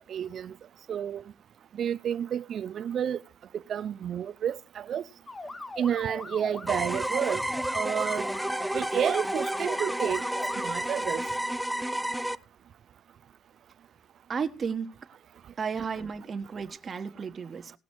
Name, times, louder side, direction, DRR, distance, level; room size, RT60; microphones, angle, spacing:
voice 1, 0.1-0.5 0.9-1.2 1.7-3.2 3.5-5.0 5.8-7.4 7.7-8.3 8.7-10.2 10.6-11.2, right 9 dB, 55° right, 0.5 m, -30 dB
sound 1, 5.3-10.7, left 2 dB, 20° left, 1.0 m, -40 dB
sound 2, 6.7-12.4, right 1 dB, 5° right, 0.6 m, -31 dB
voice 2, 14.3-14.9 15.6-17.7, right 6 dB, 40° right, 1.4 m, -33 dB
18.0 x 6.1 x 4.6 m
cardioid pair, 90°, 0 cm